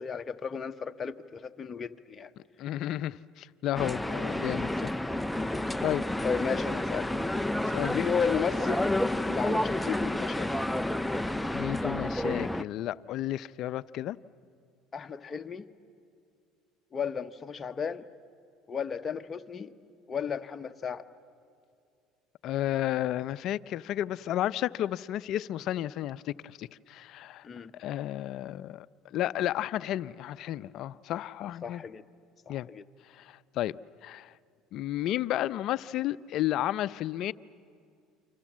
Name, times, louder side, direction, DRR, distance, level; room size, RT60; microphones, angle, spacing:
voice 1, 0.0-2.3 6.2-7.1 7.9-8.9 9.2-10.5 14.9-15.6 16.9-18.1 18.7-19.7 20.1-21.0 27.4-27.7 31.6-32.0 32.5-32.8, left 6 dB, 30° left, 1.1 m, -33 dB
voice 2, 2.6-4.9 5.8-6.1 7.7-8.0 11.5-14.2 22.4-27.4 27.8-31.8 32.5-32.7 33.1-34.3 34.7-37.3, left 13 dB, 60° left, 0.6 m, -32 dB
sound 1, 3.8-12.6, left 1 dB, 5° left, 0.6 m, -30 dB
29.5 x 25.0 x 7.4 m
supercardioid pair, 95°, 0 cm